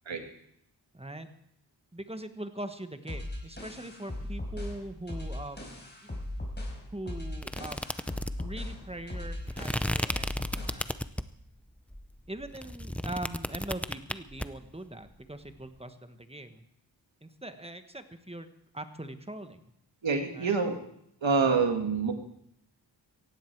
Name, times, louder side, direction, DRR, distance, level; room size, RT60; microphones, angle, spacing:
voice 1, 0.9-1.3 1.9-6.3 6.9-7.8 8.4-10.9 12.3-16.6 17.2-18.5 18.7-19.6 20.3-20.6 21.5-21.6, right 1 dB, 15° right, 9 dB, 1.3 m, -42 dB
sound 1, 3.1-10.9, left 1 dB, 25° left, 4.5 m, -38 dB
sound 2, 7.4-11.4 11.9-14.5, left 1 dB, 5° left, 0.6 m, -34 dB
voice 2, 20.0-20.8 21.2-22.1, right 5 dB, 80° right, 5 dB, 2.1 m, -26 dB
17.5 x 15.5 x 4.7 m, 0.75 s
wide cardioid pair, 70°, 45 cm